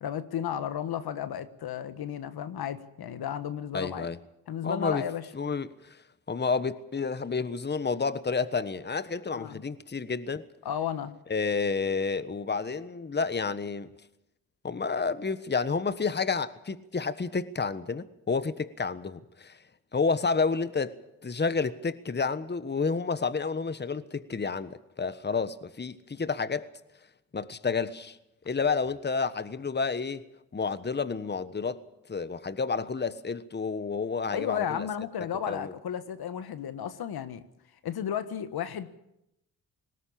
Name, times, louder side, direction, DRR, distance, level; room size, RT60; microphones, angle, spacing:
voice 1, 0.0-4.1 4.5-5.3 9.3-9.6 10.6-11.1 34.3-37.4 37.8-38.9, left 9 dB, 70° left, 1.5 m, -33 dB
voice 2, 3.7-4.2 4.6-5.0 5.3-6.0 6.3-10.4 11.3-13.9 14.6-19.6 19.9-21.0 21.2-26.7 27.3-28.2 28.4-30.2 30.5-31.8 32.1-34.9 35.5-35.7, left 4 dB, 25° left, 1.3 m, -30 dB
20.0 x 17.0 x 8.7 m
supercardioid pair, 60°, 39 cm